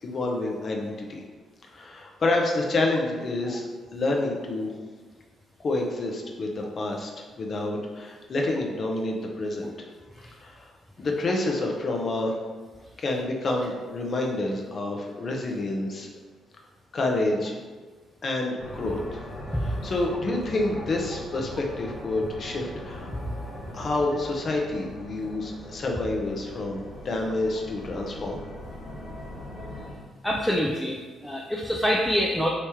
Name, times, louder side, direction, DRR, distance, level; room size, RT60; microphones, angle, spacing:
voice 1, 0.0-1.2 1.7-3.7 3.9-4.7 5.6-7.1 7.4-9.9 10.4-10.7 11.0-12.3 13.0-16.1 16.9-17.6 18.2-19.2 19.6-23.1 23.7-28.4, left 2 dB, 45° left, 1 dB, 0.6 m, -28 dB
sound 1, 18.6-29.9, left 1 dB, 65° left, 1.2 m, -40 dB
voice 2, 30.2-31.0 31.2-32.5, equal, 5° left, -2 dB, 0.3 m, -25 dB
3.0 x 2.9 x 3.5 m, 1.4 s
cardioid pair, 90°, 0 cm